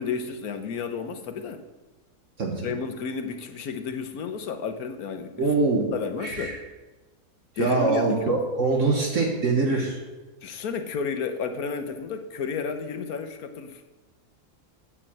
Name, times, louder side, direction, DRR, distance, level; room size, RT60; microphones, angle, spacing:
voice 1, 0.0-1.6 2.6-5.5 5.9-6.6 7.6-8.4 10.4-14.0, left 5 dB, 80° left, 7 dB, 1.4 m, -32 dB
voice 2, 5.4-5.9 6.2-6.5 7.6-10.0, right 3 dB, 55° right, 0 dB, 1.6 m, -23 dB
8.0 x 7.5 x 7.7 m, 1.2 s
omnidirectional pair, 1.6 m